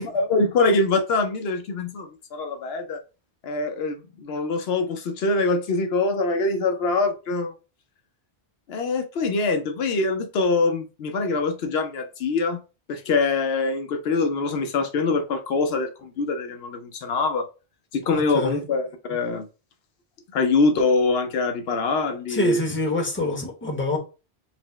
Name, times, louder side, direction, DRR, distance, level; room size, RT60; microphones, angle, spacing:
voice 1, 0.0-3.0 3.4-7.5 8.7-12.6 12.9-17.5 17.9-19.5 20.3-22.6, left 3 dB, 75° left, 0.8 m, -24 dB
voice 2, 18.1-18.6 22.3-24.0, left 2 dB, 10° left, 0.9 m, -26 dB
4.3 x 2.0 x 4.1 m
omnidirectional pair, 1.1 m